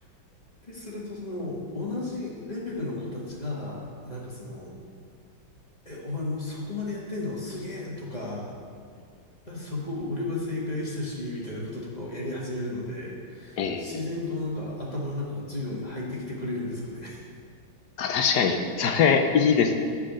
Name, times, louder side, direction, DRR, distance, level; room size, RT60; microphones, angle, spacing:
voice 1, 0.6-4.8 5.9-8.6 9.5-17.2, left 2 dB, 20° left, -5 dB, 1.9 m, -33 dB
voice 2, 13.6-14.0 18.0-19.8, left 6 dB, 65° left, 5 dB, 1.2 m, -22 dB
11.5 x 4.8 x 7.4 m, 2.3 s
omnidirectional pair, 2.1 m